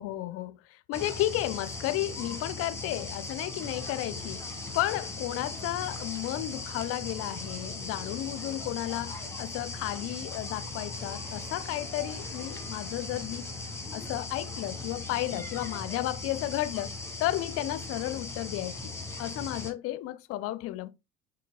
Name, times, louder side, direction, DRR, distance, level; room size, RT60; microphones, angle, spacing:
voice 1, 0.0-13.4 13.9-16.9 17.2-20.9, left 15 dB, 45° left, 0.5 m, -33 dB
sound 1, 0.9-19.7, left 3 dB, 10° left, 0.9 m, -38 dB
sound 2, 10.9-14.2, right 1 dB, 10° right, 1.6 m, -54 dB
4.5 x 3.1 x 2.3 m
figure-of-eight pair, 60°, 33 cm